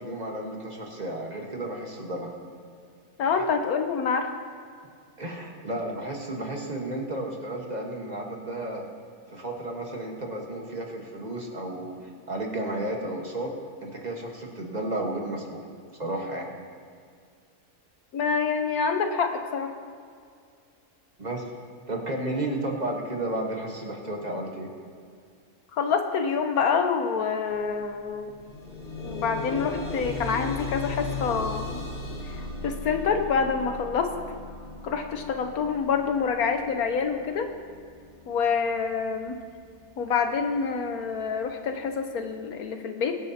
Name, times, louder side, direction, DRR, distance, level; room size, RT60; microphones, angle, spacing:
voice 1, 0.0-2.3 3.3-3.4 5.2-8.9 9.3-15.6 16.0-16.5 21.2-21.4 21.9-24.7, right 1 dB, 30° right, 0 dB, 1.4 m, -33 dB
voice 2, 3.2-4.3 18.1-19.7 25.7-28.3 29.0-31.9 32.3-34.1 34.8-37.5 38.3-39.4 40.0-43.2, left 5 dB, 75° left, 6 dB, 1.4 m, -27 dB
sound 1, 27.5-27.7 28.0-39.1 39.8-39.9 40.4-40.5, left 3 dB, 50° left, 1.8 m, -37 dB
22.5 x 9.0 x 2.9 m, 2.2 s
omnidirectional pair, 1.6 m